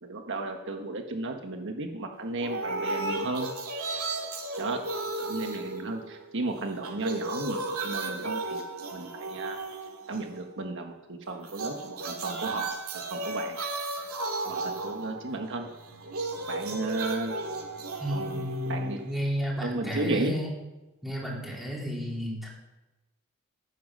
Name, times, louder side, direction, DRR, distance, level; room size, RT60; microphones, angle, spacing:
voice 1, 0.0-3.5 4.6-4.8 5.2-8.6 8.9-9.6 10.1-12.7 13.1-13.6 14.4-15.7 16.5-17.4 18.1-19.0 19.6-20.3, right 2 dB, 60° right, 4 dB, 1.3 m, -34 dB
sound 1, 2.4-6.4 6.7-10.5 11.4-19.4, right 2 dB, 75° right, 2.3 m, -35 dB
voice 2, 18.0-20.5 21.0-22.5, equal, ahead, -4 dB, 3.7 m, -32 dB
15.5 x 9.4 x 6.3 m, 1.0 s
head